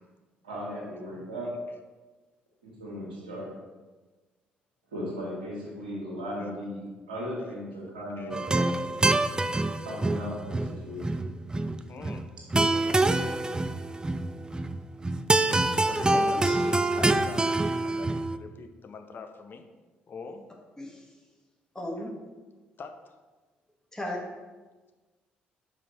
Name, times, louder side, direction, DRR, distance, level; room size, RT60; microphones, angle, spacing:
voice 1, 0.4-1.5 2.6-3.5 4.9-8.8 9.8-11.3, equal, 90° right, -5 dB, 1.8 m, -37 dB
voice 2, 8.2-8.9 11.9-12.3 12.7-13.0 15.8-19.6 20.1-20.4 22.8-23.1, left 4 dB, 45° left, 6 dB, 0.8 m, -44 dB
sound 1, 8.3-18.4, right 2 dB, 15° right, 0.4 m, -26 dB
voice 3, 16.1-17.1 20.8-21.1 21.7-22.4 23.9-24.3, left 1 dB, 10° left, -2 dB, 1.6 m, -36 dB
5.7 x 4.9 x 4.5 m, 1.3 s
hypercardioid pair, 50°, 5 cm